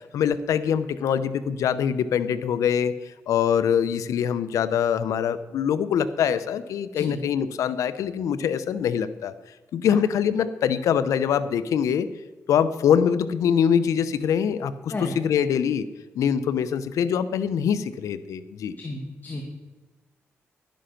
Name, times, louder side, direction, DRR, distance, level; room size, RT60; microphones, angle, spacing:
voice 1, 0.1-9.3 9.7-12.1 12.5-15.9 16.2-18.7, left 8 dB, 85° left, 14 dB, 0.7 m, -24 dB
voice 2, 18.8-19.4, left 2 dB, 35° left, 1 dB, 2.1 m, -32 dB
11.5 x 10.5 x 5.8 m, 1.2 s
cardioid pair, 75°, 5 cm